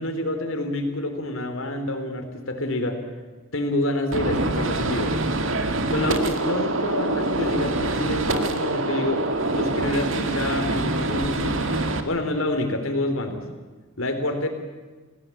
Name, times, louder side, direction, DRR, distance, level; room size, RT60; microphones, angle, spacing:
voice 1, 0.0-3.0 3.5-5.2 5.9-11.7 12.0-13.5 14.0-14.5, left 1 dB, 75° left, 6 dB, 3.7 m, -27 dB
Gunshot gunfire, 4.1-12.0, right 2 dB, 70° right, 2.0 m, -25 dB
30.0 x 17.5 x 8.6 m, 1.3 s
head